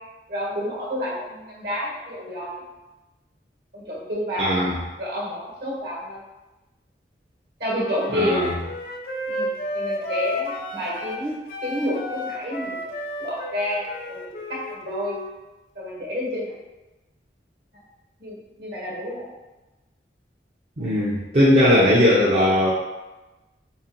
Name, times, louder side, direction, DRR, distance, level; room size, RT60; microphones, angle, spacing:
voice 1, 0.3-2.6 3.7-4.5 5.0-6.2 7.6-8.5 9.3-11.3 11.6-12.8 13.2-15.1 15.7-16.5 18.2-19.3 20.8-21.0, equal, 65° right, -5 dB, 1.3 m, -29 dB
voice 2, 4.4-4.7 8.1-8.5 20.8-22.7, left 1 dB, 35° right, -8 dB, 0.5 m, -18 dB
Wind instrument woodwind instrument, 7.7-11.2 11.5-15.4, left 1 dB, 50° left, 0.4 m, -32 dB
4.2 x 2.9 x 2.5 m, 1.1 s
head